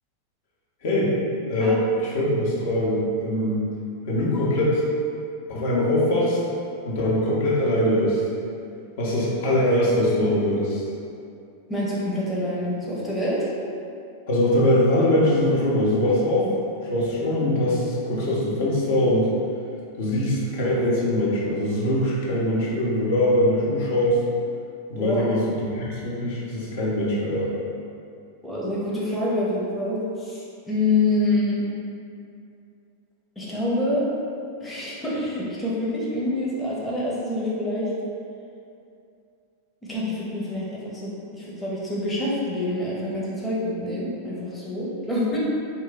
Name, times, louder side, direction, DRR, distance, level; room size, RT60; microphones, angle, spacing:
voice 1, 0.8-1.1 1.5-3.7 4.1-4.8 5.5-6.4 6.8-8.2 9.0-10.8 14.3-16.5 16.9-19.3 20.0-24.2 24.9-27.5, left 1 dB, 55° left, -6 dB, 0.7 m, -22 dB
voice 2, 11.7-13.5 25.0-25.3 28.4-31.6 33.4-34.1 34.6-37.9 39.9-45.4, left 1 dB, 10° left, -7 dB, 0.7 m, -26 dB
2.5 x 2.1 x 3.9 m, 2.5 s
figure-of-eight pair, 90°, 0 cm